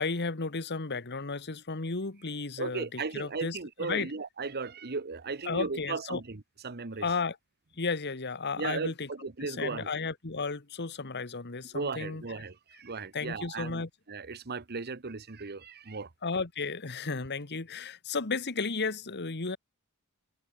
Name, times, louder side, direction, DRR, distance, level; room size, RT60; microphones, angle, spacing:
voice 1, 0.0-4.1 5.5-6.2 7.0-7.4 7.8-9.1 9.4-12.2 13.1-13.9 16.2-19.6, left 4 dB, 50° left, 1.5 m, -33 dB
voice 2, 2.6-7.1 8.6-9.9 11.7-16.1, right 4 dB, 45° right, 1.1 m, -36 dB
head